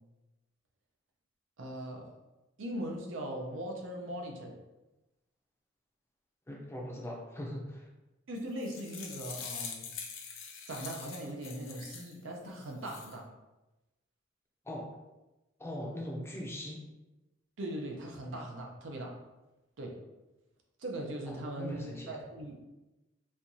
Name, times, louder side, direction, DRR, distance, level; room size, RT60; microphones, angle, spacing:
voice 1, 1.6-2.1 2.6-4.6 8.3-9.9 10.7-13.3 17.6-19.2 19.8-20.0 20.8-22.6, right 1 dB, 75° right, 1 dB, 0.6 m, -40 dB
voice 2, 6.5-7.9 14.6-14.9 15.6-16.8 21.3-22.2, left 1 dB, 15° left, -2 dB, 0.5 m, -40 dB
sound 1, 8.4-12.1 12.6-13.1, left 6 dB, 90° left, 0.6 m, -44 dB
4.3 x 2.4 x 2.7 m, 1.0 s
head